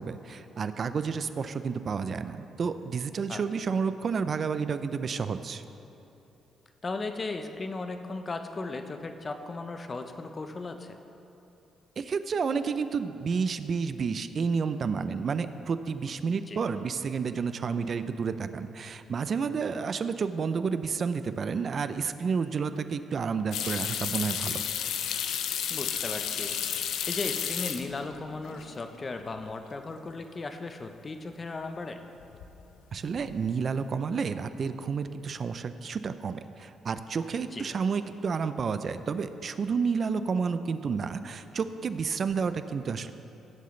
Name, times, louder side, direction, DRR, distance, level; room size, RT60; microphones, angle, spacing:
voice 1, 0.0-5.6 12.0-24.6 32.9-43.1, right 5 dB, 50° right, 11 dB, 0.5 m, -30 dB
voice 2, 6.8-11.0 16.5-16.6 25.7-26.6 27.1-32.0 37.5-37.6, left 3 dB, 30° left, 7 dB, 0.8 m, -36 dB
sound 1, 23.5-28.2 28.5-29.1 29.4-29.5 32.2-32.6 32.9-33.4, left 9 dB, 85° left, 0.6 m, -32 dB
17.0 x 7.7 x 3.2 m, 3.0 s
cardioid pair, 90°, 0 cm